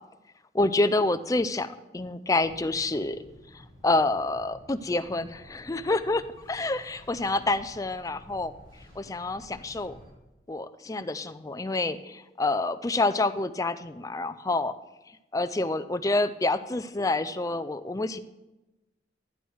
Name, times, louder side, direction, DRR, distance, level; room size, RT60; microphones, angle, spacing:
voice 1, 0.5-3.2 3.8-6.2 6.5-8.5 9.0-10.0 10.5-14.7 15.3-18.2, left 2 dB, 20° left, 11 dB, 0.4 m, -27 dB
sound 1, 2.4-10.1, equal, 30° right, 5.6 m, -52 dB
12.5 x 11.0 x 4.7 m, 1.0 s
head